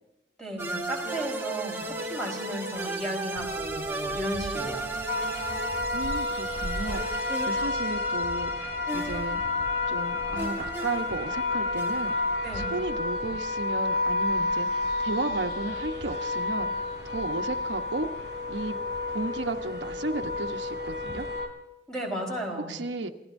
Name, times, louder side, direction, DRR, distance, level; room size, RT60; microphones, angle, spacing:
voice 1, 0.4-4.9 12.4-12.7 21.9-22.8, right 1 dB, 5° left, -1 dB, 4.6 m, -34 dB
sound 1, 0.6-12.8, right 2 dB, 15° right, 1.2 m, -35 dB
sound 2, 3.4-21.4, equal, 75° left, 7.5 m, -43 dB
sound 3, 5.1-21.5, left 3 dB, 45° left, 3.5 m, -31 dB
voice 2, 5.9-9.4 9.9-12.2 12.5-18.8 19.1-21.3 22.7-23.1, right 2 dB, 85° right, 4 dB, 1.1 m, -34 dB
29.5 x 16.5 x 2.7 m, 1.0 s
head